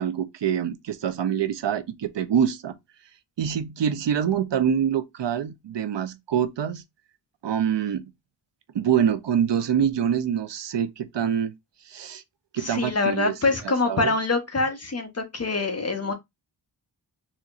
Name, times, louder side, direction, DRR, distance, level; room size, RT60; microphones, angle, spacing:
voice 1, 0.0-2.7 3.4-6.8 7.4-8.1 8.7-11.5 11.8-12.2 12.5-14.1, right 8 dB, 75° right, 0.6 m, -25 dB
voice 2, 12.6-16.1, left 3 dB, 35° left, 0.9 m, -25 dB
4.1 x 2.8 x 2.4 m
wide cardioid pair, 75°, 43 cm